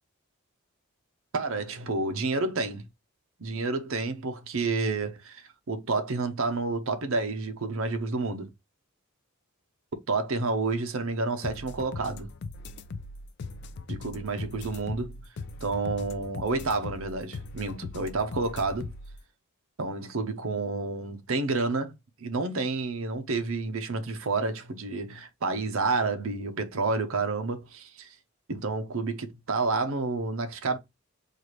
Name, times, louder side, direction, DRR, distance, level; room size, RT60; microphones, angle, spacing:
voice 1, 1.3-2.9 3.4-8.5 10.1-12.3 13.9-15.1 15.6-18.9 19.8-21.9 22.2-28.1 28.5-30.8, right 3 dB, 65° right, 0.7 m, -29 dB
sound 1, 11.4-19.2, left 3 dB, 50° left, 0.3 m, -39 dB
4.6 x 2.4 x 3.0 m
head